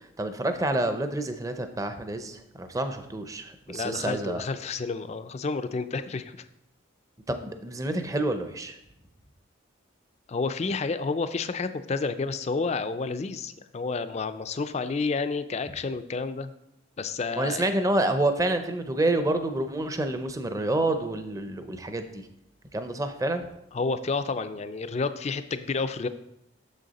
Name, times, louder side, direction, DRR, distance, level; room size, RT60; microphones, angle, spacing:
voice 1, 0.2-4.4 7.3-8.8 17.4-22.2 22.7-23.4, right 1 dB, 15° right, 8 dB, 0.5 m, -28 dB
voice 2, 3.7-6.4 10.3-16.5 17.0-17.6 23.7-26.1, left 4 dB, 35° left, 11 dB, 0.4 m, -30 dB
6.9 x 6.5 x 4.1 m, 0.81 s
head